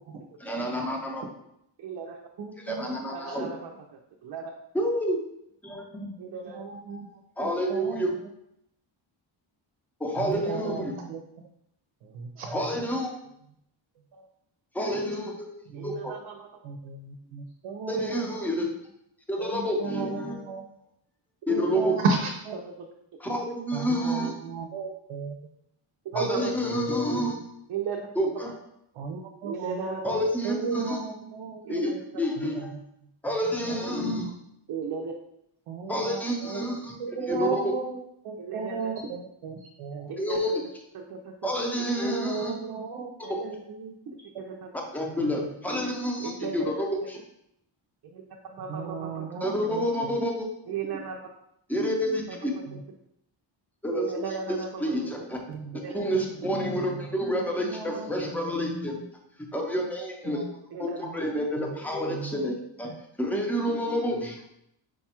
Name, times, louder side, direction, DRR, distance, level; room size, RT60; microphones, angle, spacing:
voice 1, 0.4-1.2 2.7-3.5 4.7-5.2 5.6-6.1 7.4-8.1 10.0-10.9 12.5-13.1 14.7-15.5 15.8-16.1 17.9-18.7 19.3-20.4 21.5-22.0 23.2-24.3 26.1-27.4 28.2-28.5 30.0-31.0 31.7-32.7 33.2-34.3 35.9-36.9 37.3-37.6 40.2-40.5 41.4-42.6 43.3-43.4 44.9-46.8 49.4-50.5 51.7-52.5 53.8-54.1 54.8-55.4 55.9-59.0 59.4-60.4 60.8-62.9 63.2-64.4, equal, 5° left, 0 dB, 0.5 m, -29 dB
voice 2, 1.8-2.2 3.1-3.8 4.2-4.5 6.2-6.6 14.1-14.3 15.7-16.5 18.0-18.4 22.7-22.9 26.0-26.5 26.9-27.0 27.7-28.0 29.4-30.2 30.7-30.8 31.6-32.2 34.7-35.1 36.0-36.8 38.4-38.8 40.1-40.6 40.9-41.5 43.2-43.3 44.4-44.7 46.2-46.8 48.1-49.2 49.6-49.7 50.7-51.2 52.3-52.8 53.9-55.4 55.8-56.3 57.9-58.0 60.7-61.1, right 6 dB, 50° right, 1 dB, 0.5 m, -36 dB
voice 3, 2.4-3.4 6.5-8.1 10.2-11.5 12.0-12.6 15.7-16.0 16.6-18.2 19.4-20.7 21.5-22.6 23.7-25.5 28.9-31.8 32.4-32.8 33.7-33.9 35.7-38.0 38.2-40.1 42.0-43.1 43.4-44.0 44.5-44.6 45.2-45.5 48.7-50.1 52.7-52.8 55.5-55.8 56.4-57.1 57.6-58.1 60.2-60.4 61.0-61.2 61.6-62.4, right 4 dB, 85° right, 2 dB, 0.7 m, -35 dB
5.0 x 2.3 x 4.2 m, 0.77 s
wide cardioid pair, 170°, 49 cm